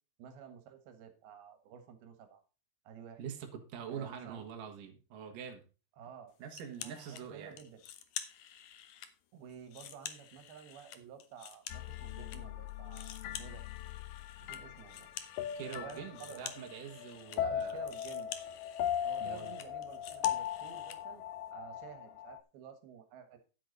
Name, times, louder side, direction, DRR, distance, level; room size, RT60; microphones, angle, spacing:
voice 1, 0.2-2.4 2.9-3.2 3.9-4.4 6.0-6.4 6.8-7.8 9.3-13.6 14.4-15.1 15.7-16.6 17.4-18.4 19.0-21.2 21.5-23.4, right 8 dB, 90° right, 8 dB, 3.4 m, -51 dB
voice 2, 3.2-5.6 6.4-7.5 15.6-17.8 19.2-19.5, right 7 dB, 65° right, 3 dB, 3.1 m, -44 dB
sound 1, 6.5-7.2 7.6-9.1 9.5-12.4 12.7-21.0, left 10 dB, 65° left, 2.1 m, -48 dB
sound 2, 11.7-22.4, left 10 dB, 85° left, 1.7 m, -39 dB
10.5 x 8.7 x 4.0 m, 0.34 s
omnidirectional pair, 4.3 m